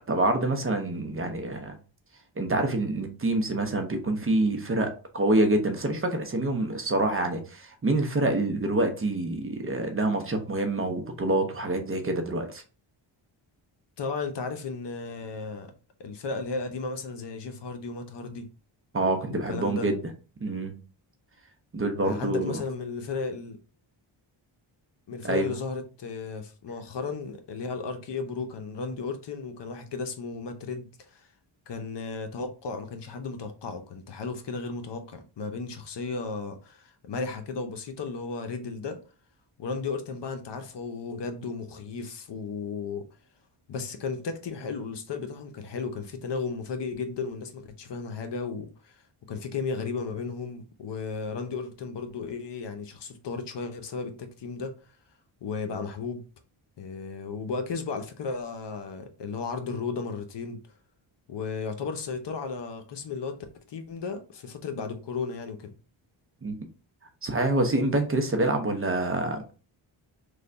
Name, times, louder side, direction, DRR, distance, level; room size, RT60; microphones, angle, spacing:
voice 1, 0.1-1.8 2.4-12.6 18.9-20.0 20.4-20.8 21.7-22.6 25.2-25.5 66.4-66.5 67.2-69.5, right 2 dB, 25° right, 0.7 m, -26 dB
voice 2, 14.0-15.7 16.0-18.5 19.5-19.9 22.0-23.6 25.1-31.3 31.7-39.0 39.6-43.0 43.7-54.7 55.4-56.2 56.8-60.6 61.3-63.4 63.7-65.7, left 4 dB, 60° left, 0.8 m, -34 dB
3.3 x 2.3 x 3.9 m
cardioid pair, 80°, 48 cm